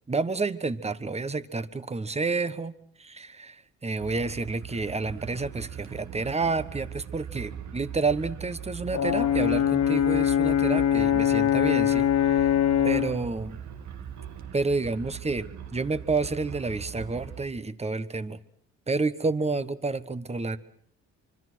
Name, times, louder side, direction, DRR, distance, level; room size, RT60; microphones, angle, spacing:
voice 1, 0.1-12.6 12.8-13.6 14.5-18.4 18.9-20.6, right 3 dB, 20° right, 14 dB, 1.3 m, -30 dB
sound 1, 4.0-17.4, right 9 dB, 70° right, 2.2 m, -41 dB
Brass instrument, 8.9-13.2, left 10 dB, 65° left, 2.2 m, -22 dB
25.5 x 24.5 x 6.3 m, 0.64 s
cardioid pair, 90°, 30 cm